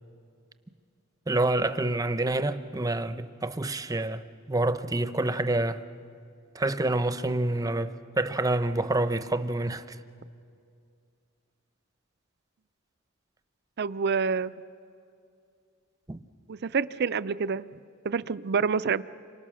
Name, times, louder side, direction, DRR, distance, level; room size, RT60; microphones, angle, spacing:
voice 1, 1.3-4.2 4.5-5.8 6.5-10.0 16.1-16.2, right 2 dB, 15° right, 0.8 m, -27 dB
voice 2, 13.8-14.5 16.5-17.6 18.0-19.0, right 5 dB, 55° right, 0.5 m, -27 dB
28.5 x 25.5 x 6.4 m
head